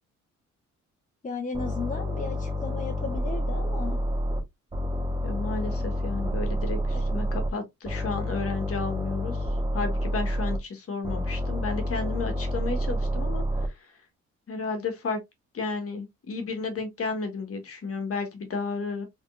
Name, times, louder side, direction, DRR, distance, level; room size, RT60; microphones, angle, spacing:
voice 1, 1.2-4.0 5.8-5.9 6.9-7.0, left 4 dB, 25° left, 1.1 m, -35 dB
sound 1, 1.5-4.4 4.7-7.5 7.8-10.6 11.0-13.7, equal, 15° right, 1.2 m, -29 dB
voice 2, 5.2-9.4 9.7-13.4 14.5-15.2 15.5-19.1, left 4 dB, 50° left, 1.5 m, -32 dB
3.7 x 3.5 x 2.4 m
cardioid pair, 90°, 30 cm